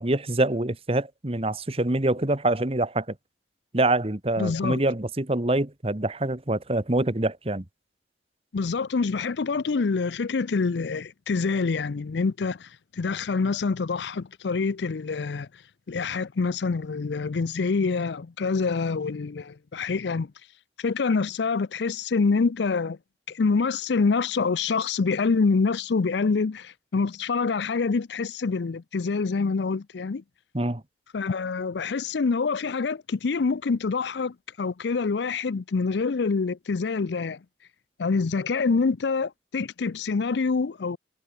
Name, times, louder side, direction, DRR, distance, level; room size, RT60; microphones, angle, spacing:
voice 1, 0.0-3.1 3.7-7.6 30.5-30.8, right 2 dB, 35° right, 1.4 m, -25 dB
voice 2, 4.4-4.8 8.5-15.5 15.9-20.3 20.8-23.0 23.3-30.2 31.1-37.4 38.0-41.0, left 4 dB, 75° left, 0.5 m, -26 dB
head